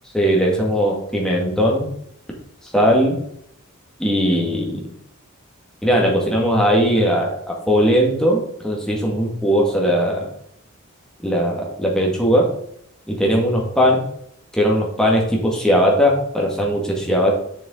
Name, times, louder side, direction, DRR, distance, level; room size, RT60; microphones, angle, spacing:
voice 1, 0.1-1.9 2.7-3.2 4.0-4.8 5.8-10.3 11.2-12.6 13.1-14.0 14.5-17.4, equal, 5° left, -2 dB, 1.8 m, -19 dB
7.0 x 6.6 x 3.8 m, 0.70 s
head